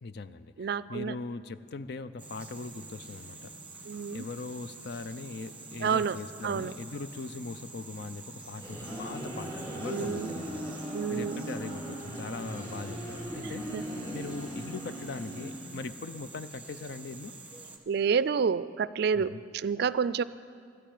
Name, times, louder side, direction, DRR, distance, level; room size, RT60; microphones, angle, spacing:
voice 1, 0.0-3.5 4.1-10.7 11.1-17.3 19.1-19.4, left 3 dB, 60° left, 13 dB, 0.5 m, -40 dB
voice 2, 0.6-1.1 3.8-4.3 5.8-6.2 6.4-6.8 9.9-10.4 10.9-11.4 13.4-13.9 17.9-20.2, right 6 dB, 60° right, 17 dB, 0.4 m, -29 dB
sound 1, 2.2-17.8, right 3 dB, 5° right, 1.4 m, -47 dB
sound 2, 8.3-16.0, right 1 dB, 20° left, 3.0 m, -39 dB
13.0 x 9.3 x 9.1 m, 2.3 s
head